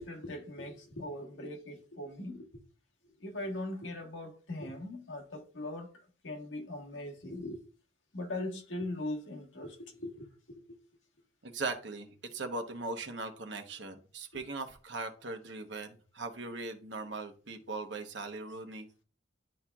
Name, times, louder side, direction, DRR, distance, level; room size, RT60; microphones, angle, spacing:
voice 1, 0.0-2.5 3.2-5.9 6.2-7.6 8.1-10.6, left 1 dB, 85° left, 1.5 m, -40 dB
voice 2, 11.4-18.9, right 3 dB, 70° right, 1.0 m, -39 dB
10.0 x 4.4 x 2.3 m
head